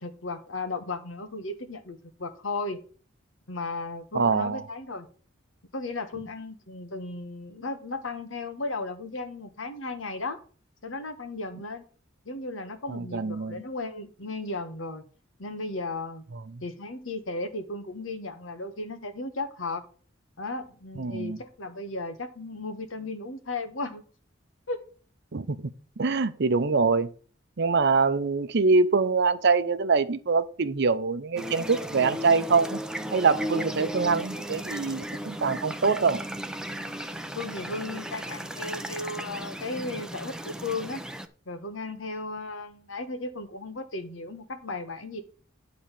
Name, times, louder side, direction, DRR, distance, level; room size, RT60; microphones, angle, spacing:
voice 1, 0.0-2.8 3.5-5.1 5.7-10.4 10.8-11.8 12.2-15.0 15.4-16.2 16.6-19.8 20.4-24.0 24.7-24.8 37.4-41.0 41.5-45.2, left 3 dB, 75° left, 1.3 m, -35 dB
voice 2, 4.1-4.6 12.9-13.6 16.5-16.6 21.0-21.4 25.3-25.6 26.0-27.1 27.6-32.8 33.1-36.2, right 4 dB, 60° right, 0.7 m, -24 dB
sound 1, 31.4-41.3, equal, 5° right, 0.6 m, -35 dB
10.0 x 3.9 x 7.3 m
head